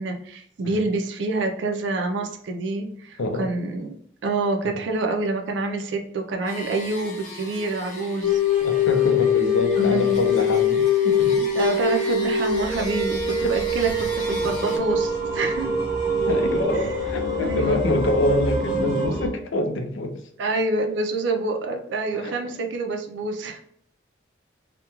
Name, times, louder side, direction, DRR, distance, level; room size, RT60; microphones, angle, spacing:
voice 1, 0.0-3.9 4.2-8.7 9.8-10.2 11.6-15.7 16.7-16.9 17.4-17.8 20.4-23.6, right 3 dB, 70° right, 3 dB, 0.4 m, -27 dB
sound 1, 6.4-14.8, left 2 dB, 40° left, 0.6 m, -38 dB
sound 2, 8.2-19.1, left 4 dB, 65° left, 1.0 m, -23 dB
voice 2, 8.6-11.5 13.4-13.5 13.8-13.9 14.4-15.0 16.3-20.2 22.2-22.3, left 1 dB, 85° left, 5 dB, 0.5 m, -26 dB
sound 3, 12.5-19.3, equal, 20° right, 0.8 m, -31 dB
2.3 x 2.1 x 2.9 m, 0.69 s
head